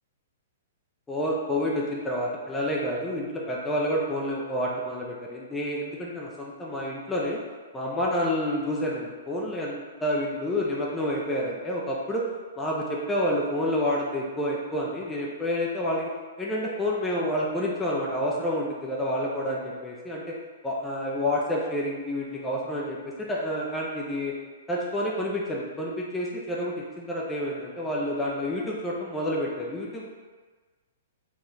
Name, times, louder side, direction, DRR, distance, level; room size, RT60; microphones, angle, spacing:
voice 1, 1.1-7.4 7.7-12.3 12.6-16.1 16.4-20.4 20.6-24.3 24.7-30.1, equal, 10° left, -4 dB, 0.5 m, -29 dB
3.9 x 2.4 x 3.0 m, 1.4 s
figure-of-eight pair, 115°, 0 cm